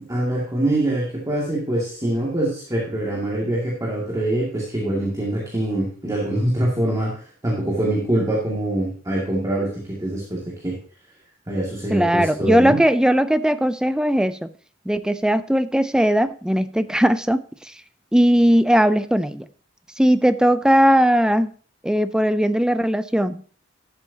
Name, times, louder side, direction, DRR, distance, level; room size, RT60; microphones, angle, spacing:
voice 1, 0.1-10.8 11.5-12.8, right 1 dB, 20° right, -4 dB, 2.2 m, -24 dB
voice 2, 11.9-14.5 14.9-17.8 18.1-19.5 20.0-21.5 21.8-23.4, equal, 5° right, 12 dB, 0.4 m, -18 dB
12.5 x 7.7 x 2.8 m, 0.43 s
head